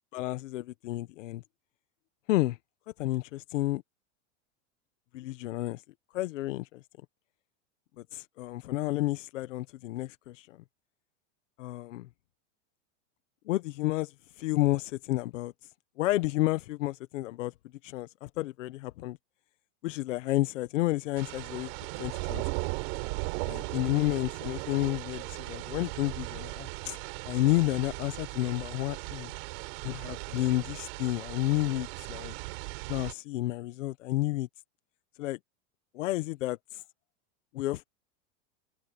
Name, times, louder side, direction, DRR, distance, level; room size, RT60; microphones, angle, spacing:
voice 1, 0.1-1.4 2.3-2.6 3.0-3.8 5.1-5.8 6.1-6.8 8.0-10.6 11.6-12.1 13.5-15.5 16.0-17.5 17.8-19.2 19.8-22.4 23.5-29.3 29.8-32.3 32.9-34.5 35.2-35.4 35.9-36.8 37.5-37.8, left 17 dB, 90° left, 1.0 m, -31 dB
sound 1, 21.2-33.1, right 29 dB, 55° right, 3.6 m, -37 dB
open air
supercardioid pair, 155°, 36 cm